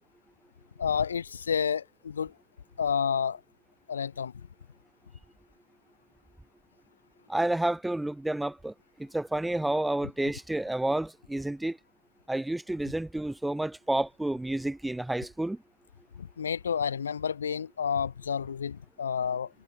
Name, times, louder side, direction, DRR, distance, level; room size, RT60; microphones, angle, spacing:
voice 1, 0.8-2.3 2.8-3.4 3.9-4.3 16.2-19.5, left 7 dB, 70° left, 1.2 m, -30 dB
voice 2, 7.3-11.8 12.3-15.6, right 1 dB, 5° right, 0.8 m, -30 dB
figure-of-eight pair, 90°, 0 cm